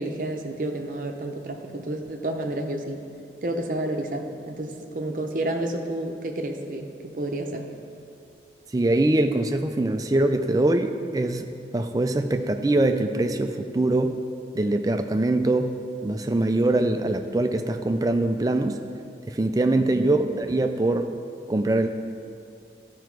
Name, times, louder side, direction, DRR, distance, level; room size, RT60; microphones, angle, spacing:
voice 1, 0.0-3.1 3.4-7.7 19.8-20.1, right 1 dB, 50° right, 3 dB, 0.7 m, -30 dB
voice 2, 8.7-14.2 14.5-18.8 19.3-21.1 21.5-21.9, right 2 dB, 20° right, 6 dB, 0.4 m, -23 dB
13.0 x 4.6 x 4.6 m, 2.5 s
head